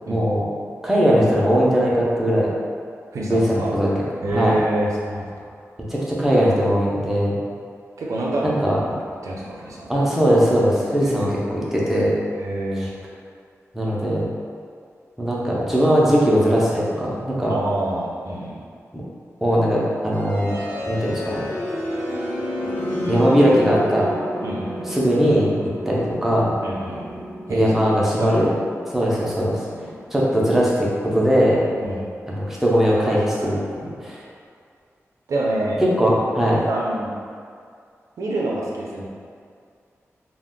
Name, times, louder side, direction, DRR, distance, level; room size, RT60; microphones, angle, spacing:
voice 1, 0.1-0.4 0.8-2.5 3.3-4.0 4.3-4.6 5.9-7.5 8.4-8.8 9.9-12.2 13.7-14.3 15.2-17.5 18.9-19.0 19.4-21.5 23.1-24.1 24.9-26.6 27.5-28.5 28.9-29.6 30.1-31.7 32.3-34.2 36.0-36.7, equal, 5° right, -6 dB, 0.5 m, -20 dB
voice 2, 3.1-3.7 4.2-5.5 8.0-8.5 8.8-8.9 9.2-9.9 11.0-11.4 12.3-12.9 17.5-18.6 24.4-24.8 26.6-28.3 29.7-30.0 31.8-32.1 33.4-33.9 35.3-35.8 36.7-37.1 38.2-39.1, right 1 dB, 85° right, -4 dB, 0.5 m, -27 dB
sound 1, 20.1-32.0, left 1 dB, 85° left, 0.7 m, -31 dB
2.3 x 2.1 x 3.6 m, 2.2 s
wide cardioid pair, 175°, 5 cm